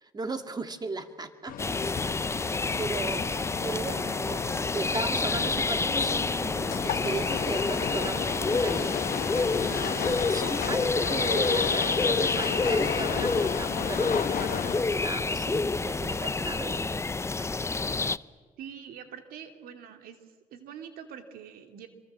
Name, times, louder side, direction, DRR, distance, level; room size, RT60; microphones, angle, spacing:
voice 1, 0.0-1.8 2.3-9.0 9.7-17.0 17.4-17.5, right 3 dB, 25° right, 8 dB, 2.1 m, -37 dB
sound 1, 1.5-14.8, left 10 dB, 65° left, 1.3 m, -34 dB
sound 2, 1.6-18.2, left 3 dB, 20° left, 0.6 m, -28 dB
voice 2, 18.6-20.2 20.5-21.9, right 8 dB, 75° right, 6 dB, 2.7 m, -44 dB
27.0 x 23.0 x 7.5 m, 1.5 s
supercardioid pair, 80°, 15 cm